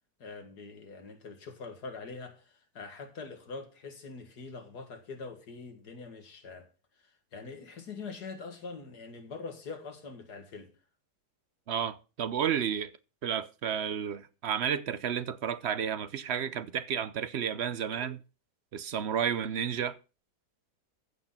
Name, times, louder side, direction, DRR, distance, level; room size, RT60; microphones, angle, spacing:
voice 1, 0.2-6.7 7.0-10.7, left 4 dB, 70° left, 2.4 m, -44 dB
voice 2, 11.7-12.9 13.2-18.2 18.7-20.0, right 8 dB, 55° right, 0.7 m, -31 dB
15.0 x 6.4 x 5.8 m
omnidirectional pair, 1.8 m